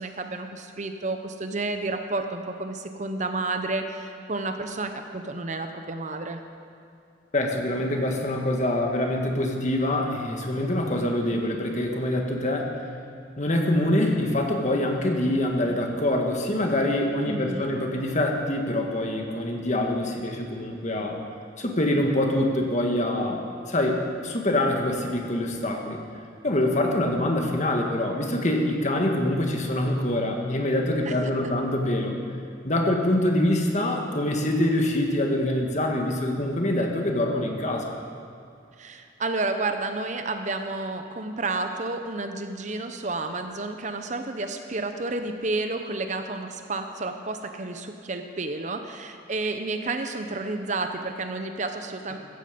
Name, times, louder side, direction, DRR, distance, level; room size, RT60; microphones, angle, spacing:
voice 1, 0.0-6.4 17.2-17.7 31.1-31.2 38.8-52.2, right 3 dB, 40° right, 6 dB, 0.8 m, -31 dB
voice 2, 7.3-12.7 13.4-21.2 21.6-23.4 23.7-26.0 26.4-32.2 32.6-37.9, left 1 dB, 40° left, 2 dB, 1.7 m, -25 dB
16.0 x 14.5 x 5.2 m, 2.4 s
head